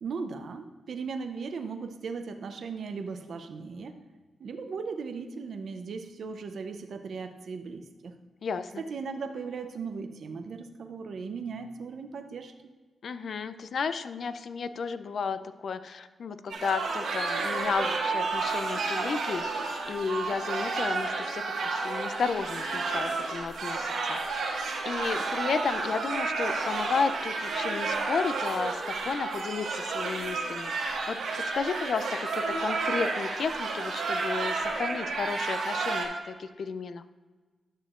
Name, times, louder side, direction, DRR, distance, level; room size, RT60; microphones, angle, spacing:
voice 1, 0.0-4.0 4.4-8.1 8.8-12.5, right 5 dB, 70° right, 6 dB, 0.6 m, -37 dB
voice 2, 8.4-8.8 13.0-24.2 24.8-31.2 31.5-37.0, left 5 dB, 70° left, 12 dB, 0.4 m, -33 dB
sound 1, 16.5-36.1, right 3 dB, 90° right, 1.5 m, -31 dB
11.0 x 6.6 x 2.5 m, 1.3 s
cardioid pair, 55°, 0 cm